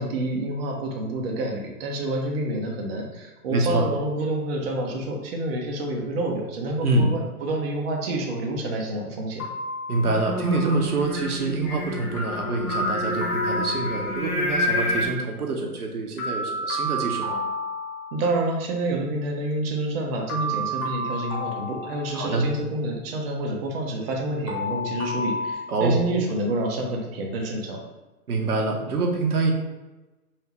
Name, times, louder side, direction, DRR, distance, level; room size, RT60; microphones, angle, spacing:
voice 1, 0.0-9.5 18.1-27.8, right 1 dB, 40° right, 0 dB, 0.7 m, -28 dB
voice 2, 3.5-3.9 6.8-7.1 9.9-17.4 22.1-22.5 25.7-26.0 28.3-29.5, right 2 dB, 75° right, 1 dB, 0.8 m, -25 dB
sound 1, 9.4-10.5 12.2-14.5 16.2-18.5 20.3-22.6 24.5-25.5, equal, 65° left, 1.4 m, -31 dB
Singing, 10.0-15.1, left 1 dB, ahead, 0.7 m, -28 dB
3.5 x 2.8 x 3.0 m, 1.1 s
figure-of-eight pair, 115°, 45 cm